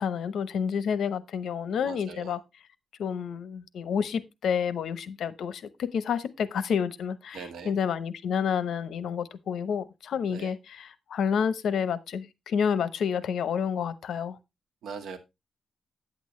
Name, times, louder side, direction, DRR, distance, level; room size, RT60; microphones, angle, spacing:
voice 1, 0.0-2.4 3.0-14.4, left 7 dB, 80° left, 0.8 m, -29 dB
voice 2, 1.8-2.3 7.3-7.7 10.3-10.5 14.8-15.2, right 5 dB, 85° right, 1.6 m, -40 dB
8.9 x 8.4 x 3.1 m
cardioid pair, 125°, 0 cm